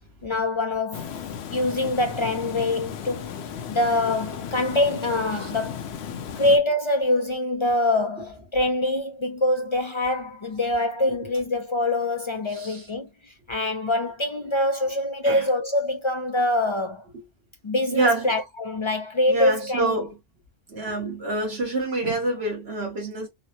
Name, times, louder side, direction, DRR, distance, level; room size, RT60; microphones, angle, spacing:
voice 1, 0.2-1.2 1.5-3.3 3.7-6.0 6.4-17.0 17.6-20.0, left 2 dB, 55° left, 0.3 m, -24 dB
Water, 0.9-6.6, left 7 dB, 75° left, 0.8 m, -35 dB
voice 2, 17.9-18.3 19.3-20.1 20.7-23.3, right 2 dB, 70° right, 1.4 m, -26 dB
3.8 x 2.1 x 2.7 m
omnidirectional pair, 1.1 m